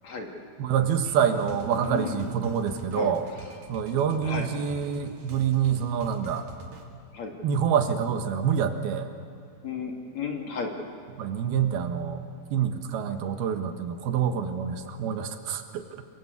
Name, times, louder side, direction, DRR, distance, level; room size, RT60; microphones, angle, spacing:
voice 1, 0.6-3.2 3.7-6.5 7.4-9.1 11.2-12.2 12.5-16.0, right 8 dB, 85° right, 7 dB, 3.5 m, -26 dB
sound 1, 1.0-6.8, right 3 dB, 55° right, 3.5 m, -45 dB
voice 2, 1.8-2.2 2.9-3.1 4.2-4.5 7.1-7.4 9.6-10.7, left 5 dB, 50° left, 3 dB, 3.5 m, -33 dB
28.0 x 24.0 x 8.4 m, 2.5 s
omnidirectional pair, 4.3 m